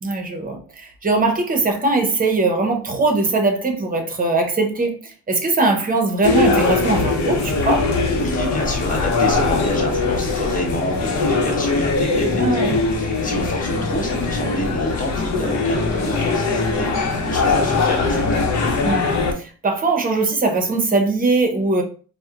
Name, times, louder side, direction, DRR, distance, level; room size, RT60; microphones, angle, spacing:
voice 1, 0.0-7.9 12.4-12.9 18.8-21.8, right 3 dB, 30° right, 0.8 m, -21 dB
sound 1, 6.2-19.3, left 3 dB, 65° left, 0.8 m, -21 dB
voice 2, 8.1-18.4, left 1 dB, 25° left, 1.2 m, -28 dB
4.2 x 2.1 x 2.4 m
cardioid pair, 90°, 30 cm